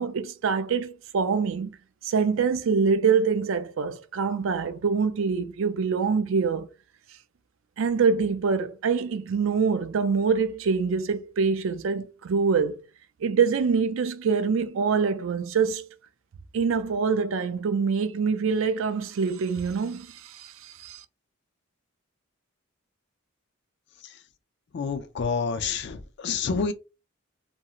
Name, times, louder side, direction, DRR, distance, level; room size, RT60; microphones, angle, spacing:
voice 1, 0.0-1.8 2.0-6.7 7.8-12.8 13.2-15.9 16.5-21.0, right 5 dB, 65° right, 0.4 m, -25 dB
voice 2, 24.7-26.7, left 5 dB, 55° left, 0.4 m, -28 dB
2.9 x 2.7 x 2.4 m
head